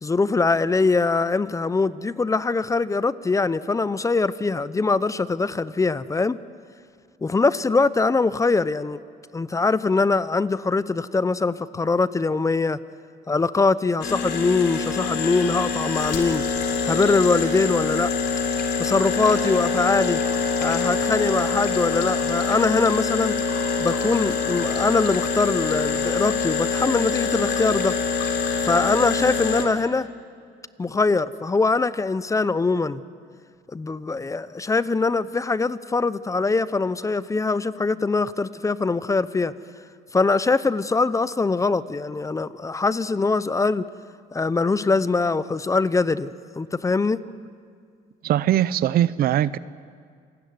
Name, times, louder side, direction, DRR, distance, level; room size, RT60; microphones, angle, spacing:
voice 1, 0.0-6.4 7.2-9.0 9.3-12.8 13.3-16.4 16.8-18.1 18.8-20.2 20.6-23.3 23.8-28.0 28.6-30.1 30.8-33.0 33.7-39.5 40.1-43.9 44.3-47.2, left 3 dB, 20° left, 0.7 m, -22 dB
sound 1, 14.0-29.7, left 4 dB, 85° left, 3.5 m, -25 dB
voice 2, 48.2-49.6, right 11 dB, 65° right, 0.8 m, -21 dB
27.5 x 19.5 x 9.6 m
cardioid pair, 110°, 17 cm